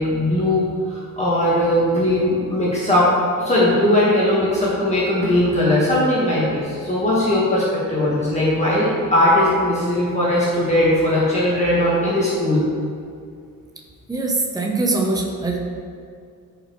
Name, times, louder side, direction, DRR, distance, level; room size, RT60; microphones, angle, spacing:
voice 1, 0.0-12.6, left 1 dB, 20° left, -8 dB, 1.4 m, -19 dB
voice 2, 14.1-15.6, right 2 dB, 10° right, 0 dB, 0.8 m, -22 dB
13.5 x 5.3 x 3.1 m, 2.3 s
wide cardioid pair, 180°, 34 cm